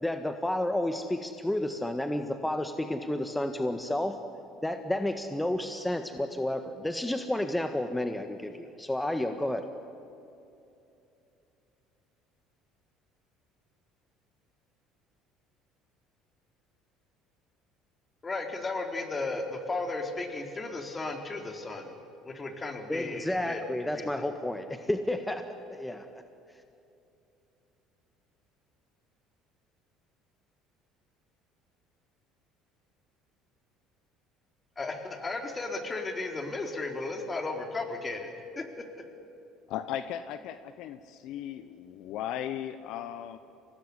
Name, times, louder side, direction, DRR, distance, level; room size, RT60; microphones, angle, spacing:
voice 1, 0.0-4.2 4.6-9.6 22.9-25.4 25.7-26.2, left 1 dB, 10° left, 7 dB, 1.6 m, -31 dB
voice 2, 18.2-21.9 22.2-23.6 24.0-24.2 34.8-38.3 38.6-39.0, left 3 dB, 25° left, 4 dB, 4.0 m, -35 dB
voice 3, 39.7-43.4, left 10 dB, 65° left, 12 dB, 1.0 m, -37 dB
25.0 x 19.0 x 9.8 m, 2.7 s
hypercardioid pair, 70°, 0 cm